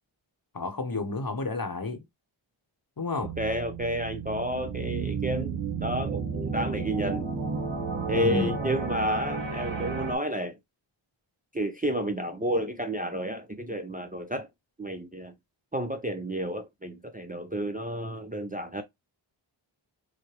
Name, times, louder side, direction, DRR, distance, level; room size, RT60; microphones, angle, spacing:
voice 1, 0.5-2.0 3.0-3.3 8.1-8.6, left 3 dB, 45° left, 0.9 m, -30 dB
sound 1, 3.2-10.2, right 5 dB, 60° right, 1.2 m, -32 dB
voice 2, 3.4-7.3 8.1-10.6 11.5-14.5 14.8-15.3 15.7-18.8, equal, 20° right, 0.5 m, -31 dB
4.7 x 2.2 x 2.9 m
wide cardioid pair, 55°, 49 cm